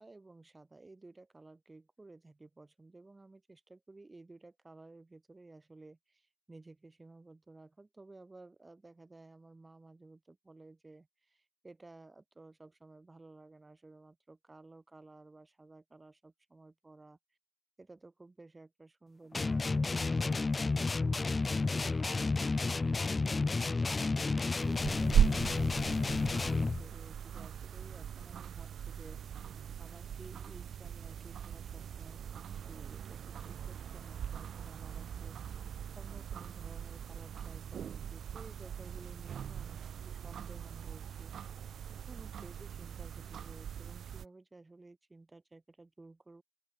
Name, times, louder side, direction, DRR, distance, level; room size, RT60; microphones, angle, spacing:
voice 1, 0.0-17.2 17.8-24.2 24.6-41.3 42.1-46.4, right 2 dB, 10° right, 5.2 m, -55 dB
sound 1, 19.3-26.9, left 3 dB, 10° left, 0.9 m, -31 dB
sound 2, 24.6-44.3, right 9 dB, 25° right, 0.5 m, -38 dB
open air
figure-of-eight pair, 90°, 0 cm